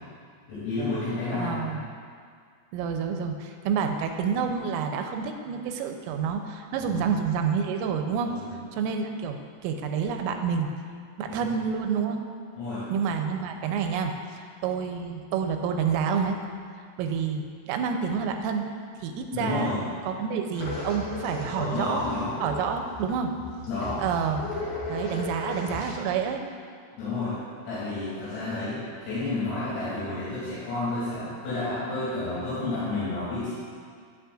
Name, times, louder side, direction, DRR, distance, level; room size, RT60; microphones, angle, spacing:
voice 1, 0.5-1.7 6.8-7.0 8.3-8.6 11.3-11.4 12.6-12.8 19.3-19.8 21.6-22.4 23.7-24.0 27.0-27.4 27.7-33.5, left 2 dB, 75° left, -13 dB, 5.7 m, -30 dB
voice 2, 1.3-1.8 2.7-8.4 8.7-10.7 11.2-12.2 12.9-16.4 17.0-18.7 19.0-22.0 22.4-23.4 24.0-24.5 24.9-26.4, right 6 dB, 85° right, 4 dB, 3.3 m, -28 dB
sound 1, 20.5-25.9, left 2 dB, 50° left, 2.7 m, -36 dB
16.5 x 8.3 x 2.5 m, 2.1 s
omnidirectional pair, 6.0 m